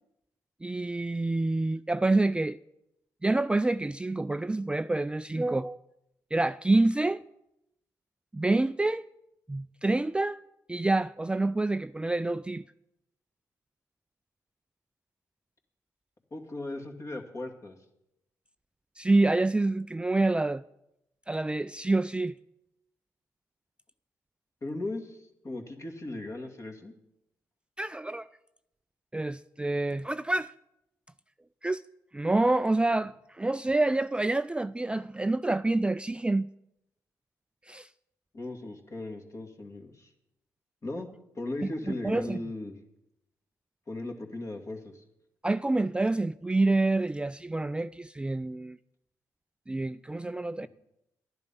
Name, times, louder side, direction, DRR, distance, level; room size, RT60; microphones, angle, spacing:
voice 1, 0.6-2.6 3.2-5.8 6.3-7.2 8.3-9.1 9.5-10.4 10.7-12.6 19.0-20.6 21.3-22.4 27.8-28.3 29.1-30.5 31.6-31.8 32.1-36.5 37.7-37.9 42.0-42.4 45.4-48.8 49.7-50.7, right 2 dB, 15° right, 0.3 m, -27 dB
voice 2, 16.3-17.8 24.6-26.9 38.3-40.1 40.8-41.1 41.3-42.8 43.9-45.0, left 2 dB, 40° left, 2.2 m, -37 dB
12.0 x 10.5 x 5.5 m
hypercardioid pair, 45°, 8 cm